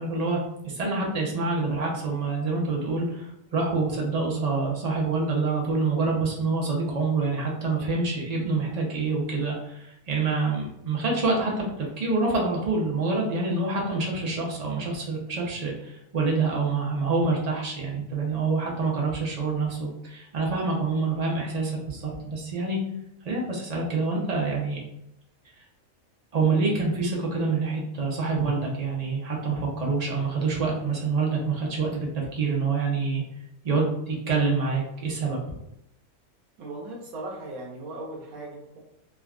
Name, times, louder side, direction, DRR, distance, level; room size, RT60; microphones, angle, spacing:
voice 1, 0.0-22.8 23.2-24.8 26.3-33.2 33.6-35.4, right 3 dB, 45° right, -2 dB, 0.5 m, -26 dB
voice 2, 36.6-38.8, right 2 dB, 85° right, -3 dB, 1.1 m, -38 dB
3.4 x 2.2 x 2.4 m, 0.80 s
omnidirectional pair, 1.5 m